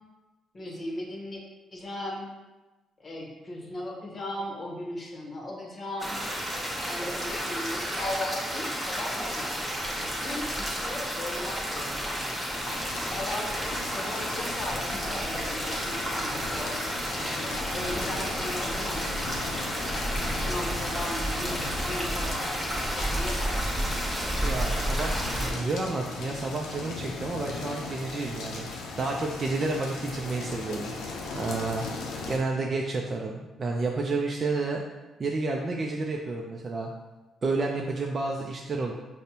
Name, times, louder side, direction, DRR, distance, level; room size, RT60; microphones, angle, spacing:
voice 1, 0.5-1.4 1.7-2.3 3.0-6.2 6.9-9.7 9.9-12.4 13.1-16.8 17.2-19.5 20.2-23.6, left 1 dB, 35° left, 0 dB, 0.8 m, -37 dB
sound 1, 6.0-25.5, right 1 dB, 10° right, 0.9 m, -31 dB
sound 2, 12.5-32.4, left 3 dB, 80° left, 0.5 m, -37 dB
voice 2, 24.4-28.7 29.0-30.9 31.3-31.9 32.3-34.8 35.2-36.9 37.4-38.9, right 3 dB, 35° right, 0 dB, 0.3 m, -30 dB
5.1 x 2.0 x 2.8 m, 1.2 s
cardioid pair, 90°, 0 cm